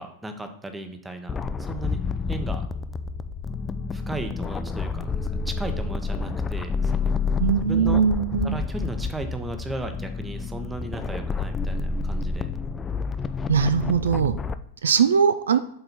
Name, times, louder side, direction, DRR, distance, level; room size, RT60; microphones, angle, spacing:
voice 1, 0.0-1.3 1.6-2.0 2.3-2.6 3.9-7.2 7.6-8.1 8.4-12.5, right 2 dB, 10° right, 7 dB, 0.8 m, -35 dB
sound 1, 1.3-14.5, left 4 dB, 20° left, 0.3 m, -29 dB
voice 2, 7.4-8.5 13.5-14.4 14.8-15.6, right 7 dB, 65° right, 12 dB, 0.3 m, -20 dB
7.7 x 4.0 x 4.1 m, 0.73 s
figure-of-eight pair, 90°, 0 cm